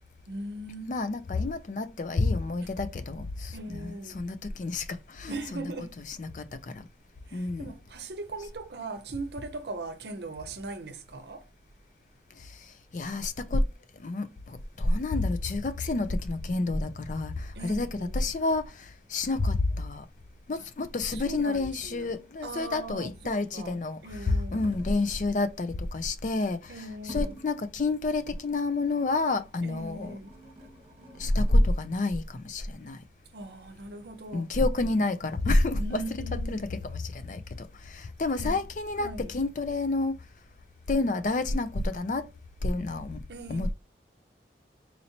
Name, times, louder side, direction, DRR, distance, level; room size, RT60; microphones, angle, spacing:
voice 1, 0.3-0.9 3.5-4.2 5.3-6.0 7.3-11.5 17.5-18.1 21.1-22.2 22.4-24.6 26.7-27.4 29.6-30.3 33.3-34.5 35.7-36.6 38.3-38.6 39.0-39.3 43.3-43.7, right 2 dB, 70° right, 0.7 m, -39 dB
voice 2, 0.9-5.6 6.2-6.4 7.3-7.7 12.9-13.6 14.0-14.3 14.8-20.0 20.5-30.2 31.2-33.0 34.3-36.0 36.5-40.2 40.9-42.3 42.6-43.2 43.5-43.7, left 2 dB, 45° left, 0.4 m, -29 dB
sound 1, 16.8-17.2 19.3-19.4 19.7-19.8 22.0-22.5 24.5-25.3 27.0-27.8 28.1-31.8, right 1 dB, 35° right, 1.1 m, -52 dB
4.1 x 2.9 x 2.8 m
head